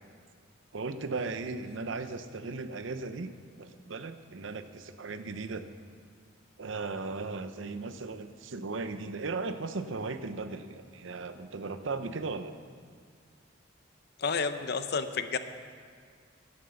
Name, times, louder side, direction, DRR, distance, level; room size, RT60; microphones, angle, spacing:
voice 1, 0.7-3.3 3.6-5.7 6.6-12.6, right 3 dB, 70° right, 10 dB, 0.7 m, -37 dB
voice 2, 14.2-15.4, left 5 dB, 55° left, 10 dB, 0.6 m, -30 dB
11.0 x 9.8 x 6.9 m, 2.1 s
head